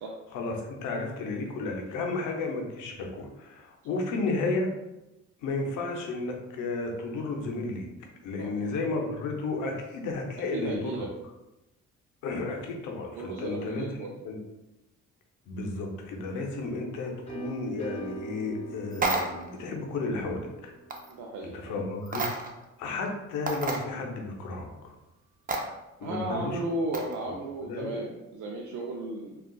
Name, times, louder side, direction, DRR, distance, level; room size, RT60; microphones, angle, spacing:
voice 1, 0.3-4.7 5.4-11.1 12.2-13.9 14.2-14.4 15.5-20.7 21.5-22.3 22.8-24.9 26.0-26.6 27.6-28.0, left 3 dB, 85° left, 2 dB, 0.6 m, -33 dB
voice 2, 8.4-8.8 10.5-11.1 13.1-14.1 21.1-21.8 26.0-29.4, right 2 dB, 80° right, -1 dB, 0.5 m, -35 dB
sound 1, 16.2-21.9, right 3 dB, 20° left, 0.8 m, -45 dB
sound 2, 18.9-19.5 20.9-21.1 22.1-22.6 23.0-23.1 23.5-23.8 25.5-25.6 26.9-27.2, right 3 dB, 30° right, 0.5 m, -30 dB
3.7 x 2.3 x 2.2 m, 0.97 s
cardioid pair, 90°, 30 cm